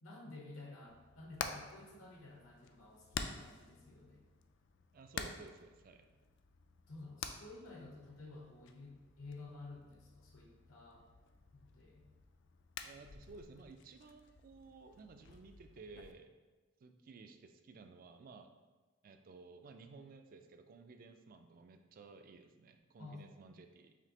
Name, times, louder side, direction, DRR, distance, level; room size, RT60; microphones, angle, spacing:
voice 1, 0.0-4.2 6.9-11.1 11.5-12.1 23.0-23.2 23.5-23.6, left 2 dB, 80° left, -2 dB, 0.8 m, -52 dB
Hammer, 0.9-16.1, left 6 dB, 60° left, 0.3 m, -50 dB
voice 2, 4.9-6.1 12.8-16.3 16.8-18.5 19.0-24.0, right 4 dB, 45° right, 7 dB, 0.3 m, -55 dB
5.0 x 3.2 x 2.8 m, 1.3 s
head